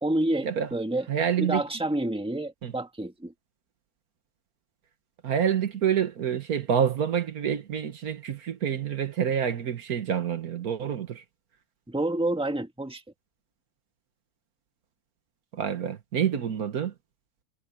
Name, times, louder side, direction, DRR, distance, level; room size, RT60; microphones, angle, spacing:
voice 1, 0.0-1.1 1.4-3.3 11.9-13.0, right 1 dB, 5° right, 1.7 m, -28 dB
voice 2, 1.1-1.6 2.6-2.7 5.2-11.2 15.5-16.9, right 8 dB, 70° right, 1.7 m, -27 dB
omnidirectional pair, 1.6 m